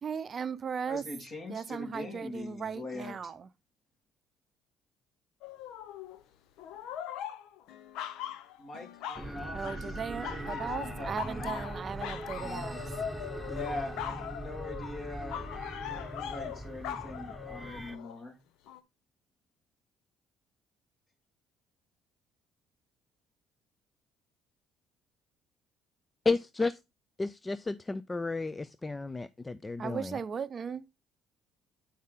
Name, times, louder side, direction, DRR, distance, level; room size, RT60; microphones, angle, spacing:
voice 1, 0.0-1.0 1.5-3.5 9.5-12.8 29.8-30.8, right 6 dB, 45° right, 0.6 m, -37 dB
voice 2, 0.9-3.3 8.6-11.7 12.3-12.8 13.5-15.5 15.8-18.4, left 2 dB, 50° left, 3.8 m, -42 dB
sound 1, 5.4-6.2 6.6-9.3 9.6-9.9 10.2-18.1 18.7-18.8, left 10 dB, 75° left, 0.7 m, -41 dB
sound 2, 9.1-18.0, right 1 dB, 5° right, 1.1 m, -41 dB
voice 3, 26.2-26.8 27.2-30.2, left 3 dB, 20° left, 0.4 m, -32 dB
8.6 x 5.5 x 3.7 m
supercardioid pair, 65°, 0 cm